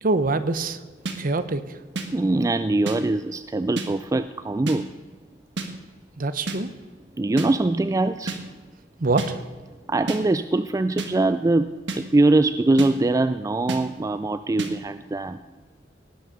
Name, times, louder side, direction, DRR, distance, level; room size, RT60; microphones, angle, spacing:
voice 1, 0.0-0.8 1.2-1.8 6.2-6.7 9.0-9.4, right 3 dB, 50° right, 12 dB, 0.8 m, -24 dB
sound 1, 1.1-1.2 2.0-2.1 2.9-3.0 3.8-3.9 4.7-4.8 5.6-5.7 6.5-6.6 7.4-7.5 8.3-8.4 9.2-9.3 10.1-10.2 11.0-11.1 11.9-12.0 12.8-12.9 13.7-13.8 14.6-14.7, right 3 dB, 70° right, 1.5 m, -29 dB
voice 2, 2.1-4.9 7.2-8.4 9.9-15.4, right 2 dB, 20° right, 11 dB, 0.3 m, -22 dB
18.5 x 6.4 x 6.5 m, 1.4 s
head